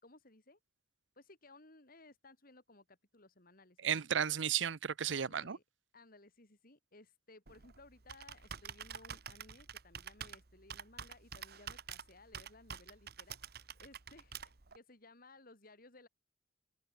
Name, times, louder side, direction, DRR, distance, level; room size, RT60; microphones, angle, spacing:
voice 1, 0.0-0.6 1.1-4.0 5.1-5.6 5.9-16.1, left 2 dB, 50° left, 4.1 m, -60 dB
voice 2, 3.8-5.6, right 8 dB, 90° right, 0.7 m, -34 dB
Computer keyboard, 7.5-14.8, right 7 dB, 60° right, 1.5 m, -48 dB
head